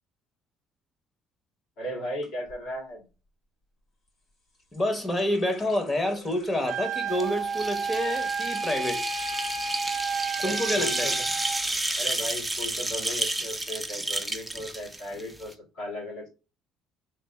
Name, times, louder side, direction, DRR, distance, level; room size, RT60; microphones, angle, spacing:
voice 1, 1.8-3.1 10.4-11.2 12.0-16.3, left 1 dB, 80° left, 2.1 m, -36 dB
sound 1, 2.2-2.6 4.1-12.0 12.3-12.9 13.2-13.6 14.3-14.4 14.7-14.8, left 4 dB, 55° left, 2.0 m, -52 dB
voice 2, 4.7-9.0 10.4-11.1, left 1 dB, 15° left, 0.8 m, -28 dB
Wind instrument woodwind instrument, 6.6-11.6, right 5 dB, 65° right, 0.6 m, -31 dB
sound 2, 7.1-15.5, right 2 dB, 5° right, 0.5 m, -31 dB
3.3 x 2.5 x 3.5 m
cardioid pair, 115°, 0 cm